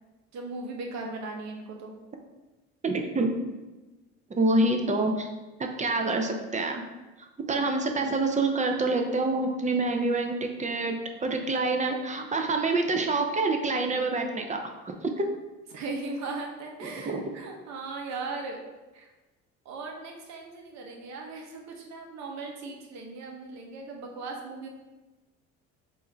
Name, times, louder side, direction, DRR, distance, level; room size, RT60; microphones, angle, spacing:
voice 1, 0.3-1.9 15.7-18.6 18.9-19.1 19.6-24.7, right 3 dB, 65° right, 1 dB, 1.0 m, -38 dB
voice 2, 2.8-3.3 4.4-5.3 5.6-6.8 7.5-15.2 17.1-17.2, right 2 dB, 25° right, 4 dB, 0.7 m, -27 dB
3.6 x 2.7 x 4.3 m, 1.1 s
supercardioid pair, 75°, 30 cm